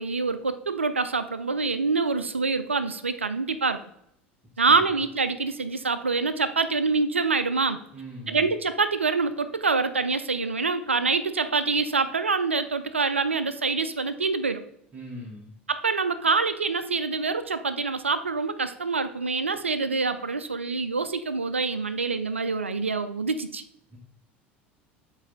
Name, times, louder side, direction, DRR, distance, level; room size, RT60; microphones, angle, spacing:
voice 1, 0.0-3.8 4.6-7.8 8.3-14.6 15.7-23.6, right 4 dB, 85° right, 12 dB, 0.4 m, -26 dB
voice 2, 7.9-8.5 14.9-15.5 23.9-24.0, equal, 25° right, -2 dB, 1.2 m, -41 dB
8.1 x 3.2 x 3.8 m, 0.75 s
figure-of-eight pair, 75°, 6 cm